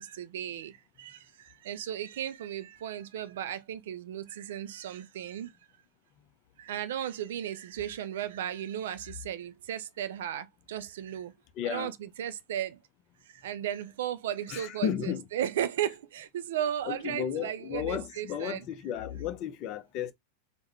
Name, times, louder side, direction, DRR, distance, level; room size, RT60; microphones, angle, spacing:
voice 1, 0.0-5.5 6.6-11.3 11.6-12.8 13.4-18.6, right 10 dB, 55° right, 0.4 m, -35 dB
voice 2, 11.6-11.9 14.5-15.2 16.9-20.1, left 9 dB, 40° left, 0.5 m, -33 dB
3.5 x 2.1 x 3.2 m
figure-of-eight pair, 90°, 0 cm